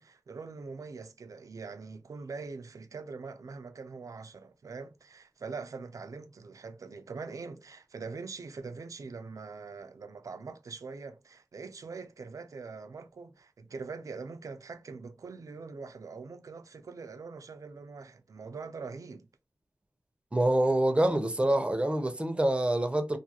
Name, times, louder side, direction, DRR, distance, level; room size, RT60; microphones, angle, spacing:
voice 1, 0.0-19.3, right 4 dB, 65° right, 0.4 m, -43 dB
voice 2, 20.3-23.2, right 1 dB, 20° right, 0.6 m, -26 dB
2.5 x 2.3 x 2.8 m
wide cardioid pair, 75°, 6 cm